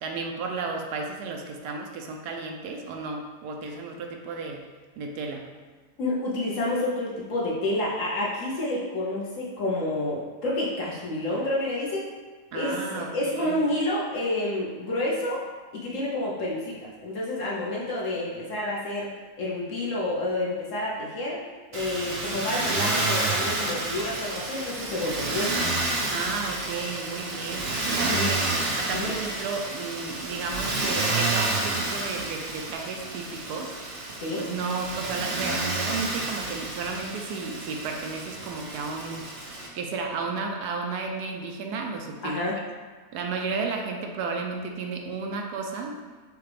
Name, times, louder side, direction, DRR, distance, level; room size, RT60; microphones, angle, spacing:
voice 1, 0.0-4.7 5.0-5.5 12.5-13.6 26.1-28.4 28.7-33.7 34.3-39.3 39.7-42.4 43.1-46.0, right 4 dB, 80° right, 2 dB, 1.1 m, -33 dB
voice 2, 6.0-12.1 12.5-15.4 15.7-21.4 21.7-25.6 28.1-28.4 28.9-29.1 34.2-34.4 42.2-42.6, left 1 dB, 60° left, -5 dB, 1.1 m, -29 dB
Motor vehicle (road), 21.7-39.7, right 2 dB, 55° right, 0.8 m, -30 dB
6.6 x 2.4 x 3.3 m, 1.4 s
omnidirectional pair, 1.7 m